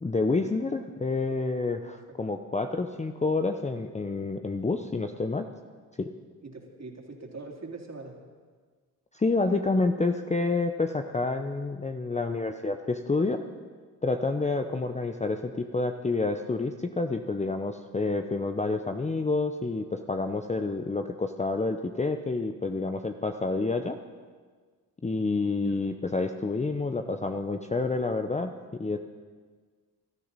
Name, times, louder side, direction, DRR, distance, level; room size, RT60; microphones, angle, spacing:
voice 1, 0.0-5.5 6.0-6.1 9.1-13.4 14.0-24.0 25.0-29.0, left 3 dB, 15° left, 6 dB, 0.8 m, -28 dB
voice 2, 6.4-8.1 25.6-25.8, right 3 dB, 35° right, 0 dB, 3.3 m, -42 dB
20.5 x 13.5 x 4.2 m, 1.5 s
hypercardioid pair, 45°, 48 cm